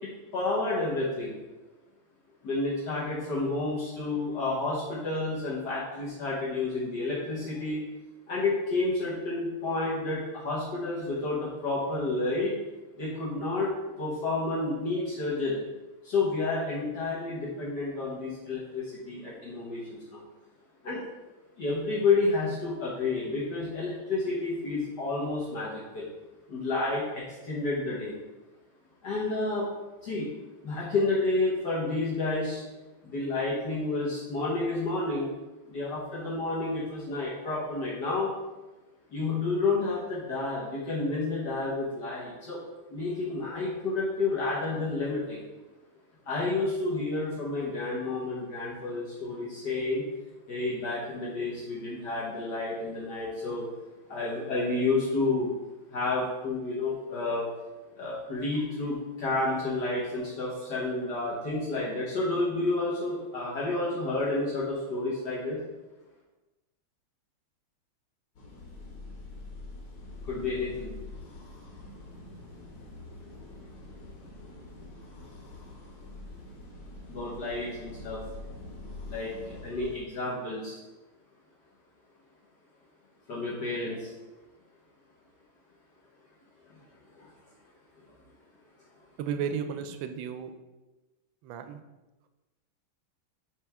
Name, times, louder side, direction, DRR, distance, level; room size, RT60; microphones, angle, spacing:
voice 1, 0.0-1.4 2.4-7.8 8.3-12.5 13.0-13.7 14.0-15.6 16.0-20.2 20.8-21.0 21.6-26.1 26.5-28.1 29.0-29.7 30.0-30.3 30.6-32.6 33.0-35.3 35.7-38.3 39.1-42.6 42.9-45.4 46.3-50.0 50.5-53.7 54.1-55.5 55.9-57.5 58.0-65.6 70.2-70.9 77.1-78.2 79.0-80.8 83.3-84.1 87.1-87.3, left 3 dB, 55° left, -7 dB, 1.8 m, -30 dB
sound 1, 68.4-80.0, left 2 dB, 90° left, 2.1 m, -45 dB
voice 2, 89.2-90.5 91.4-91.8, right 7 dB, 75° right, 8 dB, 1.3 m, -33 dB
9.2 x 3.6 x 3.5 m, 1.1 s
omnidirectional pair, 2.3 m